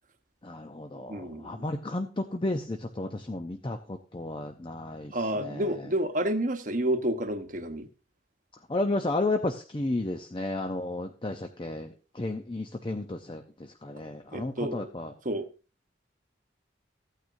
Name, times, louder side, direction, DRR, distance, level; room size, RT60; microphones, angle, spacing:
voice 1, 0.4-5.9 8.7-15.1, left 2 dB, 25° left, 0.6 m, -33 dB
voice 2, 0.9-1.6 5.1-7.9 14.3-14.9 15.2-15.5, right 1 dB, 45° right, 1.0 m, -30 dB
15.0 x 9.2 x 2.6 m
head